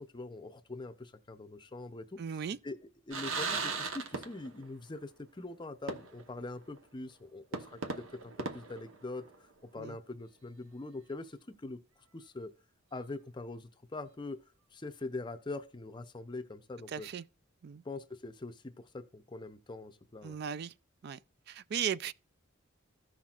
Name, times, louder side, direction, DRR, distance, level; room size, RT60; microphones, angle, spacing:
voice 1, 0.0-2.8 3.1-11.8 12.1-12.5 12.9-14.4 14.7-17.1 17.8-20.4, left 2 dB, 25° left, 0.5 m, -43 dB
voice 2, 2.2-2.6 9.8-10.0 16.9-17.2 17.6-17.8 20.2-20.7 21.0-21.2 21.5-22.1, right 8 dB, 50° right, 0.3 m, -36 dB
sound 1, 3.1-4.7 5.0-5.1 5.9-6.4 6.8-6.9 7.5-9.5, right 4 dB, 80° right, 1.0 m, -38 dB
14.5 x 5.8 x 2.4 m
head